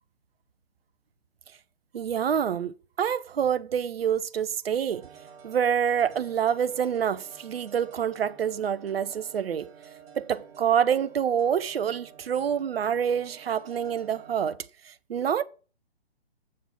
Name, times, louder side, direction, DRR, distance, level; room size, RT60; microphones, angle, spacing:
voice 1, 1.9-5.1 5.4-9.7 10.2-14.6 14.8-15.4, right 8 dB, 70° right, 0.5 m, -27 dB
sound 1, 4.9-14.5, right 7 dB, 10° right, 0.7 m, -50 dB
7.5 x 3.6 x 5.7 m
figure-of-eight pair, 135°, 31 cm